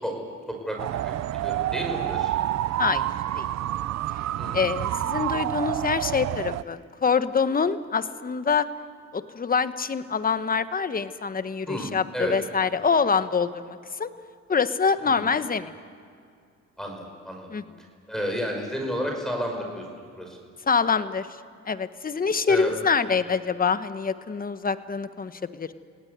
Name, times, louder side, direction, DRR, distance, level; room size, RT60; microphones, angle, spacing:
voice 1, 0.5-1.1 1.4-2.4 4.4-4.6 11.7-12.3 15.0-15.3 16.8-17.6 18.1-19.8 20.2-20.4 22.5-22.7, equal, ahead, 2 dB, 5.7 m, -31 dB
sound 1, 0.8-6.6, right 13 dB, 60° right, 0.6 m, -28 dB
voice 2, 4.5-8.7 9.1-14.1 14.5-15.7 17.5-17.6 20.7-21.3 21.7-25.7, left 5 dB, 30° left, 12 dB, 1.2 m, -25 dB
27.5 x 18.5 x 9.5 m, 2.3 s
cardioid pair, 90°, 30 cm